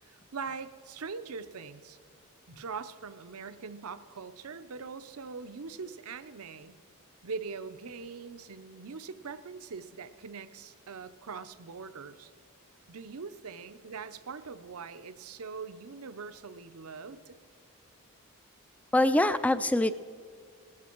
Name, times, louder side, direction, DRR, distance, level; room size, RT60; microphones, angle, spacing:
voice 1, 0.1-2.0 2.5-6.8 7.2-12.3 12.9-17.4, right 5 dB, 75° right, 12 dB, 0.7 m, -42 dB
voice 2, 18.9-20.0, left 1 dB, 5° left, 13 dB, 0.3 m, -24 dB
18.0 x 13.5 x 4.5 m, 2.1 s
head